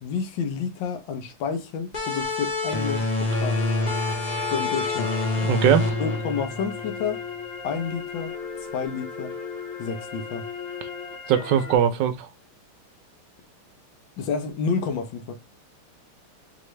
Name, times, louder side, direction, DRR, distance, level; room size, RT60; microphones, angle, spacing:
voice 1, 0.0-3.6 4.5-5.1 6.0-7.2 7.6-8.3 8.7-9.4 9.8-10.5 14.2-15.3, left 6 dB, 65° left, 1.6 m, -30 dB
sound 1, 1.9-7.2, left 2 dB, 30° left, 0.8 m, -27 dB
sound 2, 3.3-11.8, left 5 dB, 85° left, 2.2 m, -36 dB
voice 2, 5.4-5.9 11.3-12.3, right 9 dB, 70° right, 1.1 m, -21 dB
4.0 x 3.6 x 3.2 m
omnidirectional pair, 2.3 m